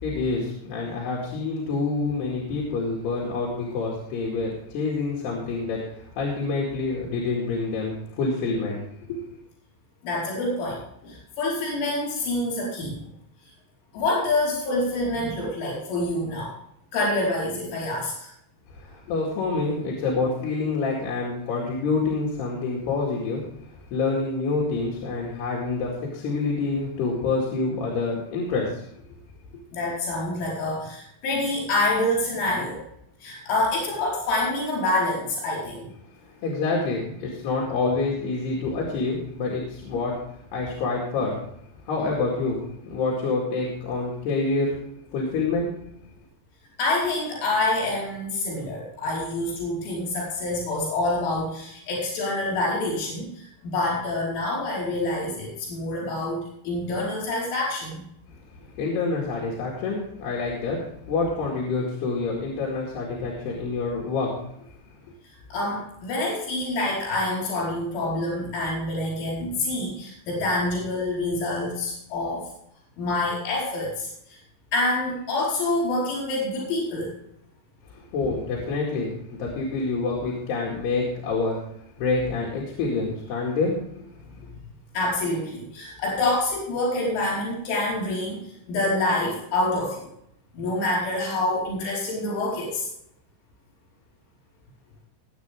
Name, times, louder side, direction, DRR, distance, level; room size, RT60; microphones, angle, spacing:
voice 1, 0.0-8.8 9.1-9.2 18.7-28.9 36.2-41.4 41.8-44.8 45.1-45.8 58.6-64.4 77.9-81.6 82.0-83.8, left 3 dB, 65° left, -3 dB, 4.0 m, -27 dB
voice 2, 10.0-13.0 13.9-16.5 16.9-18.3 29.7-32.8 33.2-35.9 46.8-58.0 65.5-72.5 73.0-74.4 74.7-77.2 84.9-90.1 90.6-92.9, left 2 dB, 80° left, -4 dB, 7.2 m, -27 dB
20.0 x 8.3 x 3.6 m, 0.73 s
omnidirectional pair, 5.4 m